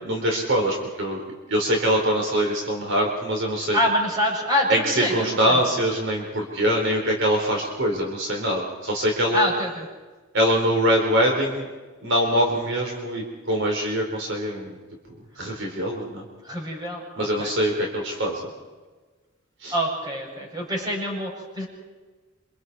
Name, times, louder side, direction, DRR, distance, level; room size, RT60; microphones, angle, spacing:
voice 1, 0.0-1.2 1.5-3.8 4.7-9.5 10.3-11.7 12.0-14.8 15.4-16.2 17.2-18.5 19.6-19.7, equal, 60° right, 1 dB, 4.2 m, -23 dB
voice 2, 3.7-5.5 9.3-9.9 16.4-17.5 19.7-21.7, equal, 20° right, -1 dB, 7.6 m, -26 dB
28.0 x 26.5 x 4.8 m, 1.3 s
head